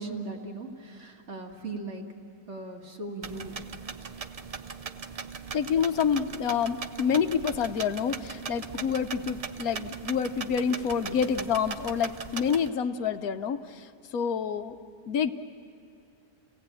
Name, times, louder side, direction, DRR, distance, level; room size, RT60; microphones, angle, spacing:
voice 1, 0.0-2.0 2.5-3.5 11.1-11.2, right 2 dB, 50° right, 1 dB, 2.3 m, -38 dB
sound 1, 3.2-12.7, right 5 dB, 75° right, 0.3 m, -39 dB
voice 2, 5.5-14.7 15.1-15.3, left 7 dB, 70° left, 10 dB, 1.3 m, -28 dB
30.0 x 17.5 x 9.0 m, 2.4 s
omnidirectional pair, 1.6 m